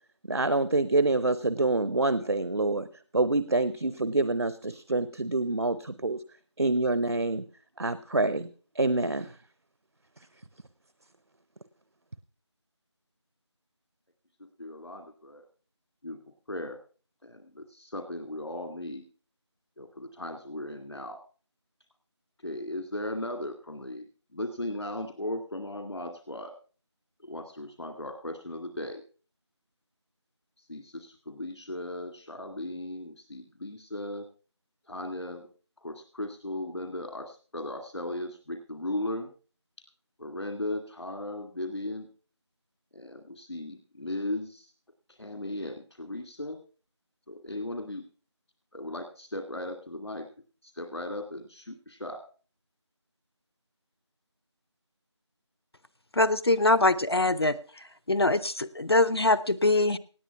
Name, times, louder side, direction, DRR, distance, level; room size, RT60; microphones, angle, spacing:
voice 1, 0.3-2.8 3.1-6.2 6.6-7.4 7.8-8.5 8.8-9.3, right 2 dB, 60° right, 15 dB, 0.8 m, -26 dB
voice 2, 14.6-15.5 16.0-16.2 16.5-16.8 17.2-19.0 19.8-21.2 22.4-26.5 27.2-29.0 30.6-34.3 34.9-35.5 35.8-39.3 40.2-42.1 42.9-44.7 45.1-46.6 47.3-48.1 48.7-50.3 50.6-52.2, left 1 dB, 75° left, 5 dB, 2.1 m, -37 dB
voice 3, 56.2-57.6 58.1-60.0, left 2 dB, 60° left, 17 dB, 0.7 m, -23 dB
18.0 x 8.9 x 5.7 m, 0.39 s
figure-of-eight pair, 175°, 15 cm